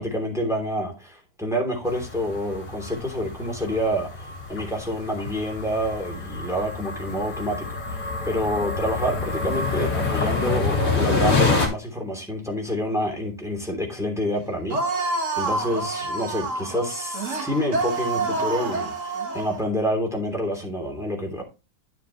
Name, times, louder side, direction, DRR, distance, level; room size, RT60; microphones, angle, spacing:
voice 1, 0.0-21.4, equal, ahead, 2.9 m, -28 dB
sound 1, 1.9-11.7, left 3 dB, 45° left, 3.1 m, -27 dB
sound 2, 14.7-19.6, right 3 dB, 40° right, 1.9 m, -28 dB
10.0 x 7.0 x 3.1 m
omnidirectional pair, 2.0 m